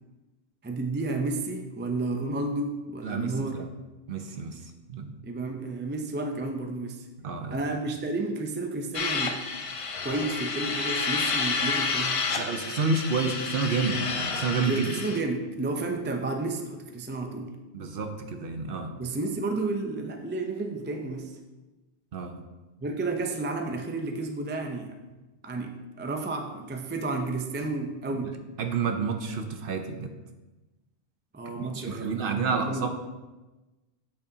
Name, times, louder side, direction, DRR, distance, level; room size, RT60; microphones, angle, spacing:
voice 1, 0.6-3.6 5.2-7.1 7.5-9.4 10.0-12.2 14.6-17.5 19.0-21.3 22.8-25.0 25.4-28.4 31.3-32.9, right 2 dB, 15° right, 4 dB, 0.3 m, -31 dB
voice 2, 3.0-3.7 4.1-4.6 4.9-5.1 7.2-7.6 12.3-14.8 17.7-18.9 22.1-22.4 28.6-30.1 31.5-32.9, right 4 dB, 60° right, 6 dB, 0.8 m, -29 dB
sound 1, 8.9-15.2, left 4 dB, 45° left, 0.5 m, -30 dB
7.9 x 6.8 x 2.7 m, 1.1 s
omnidirectional pair, 1.2 m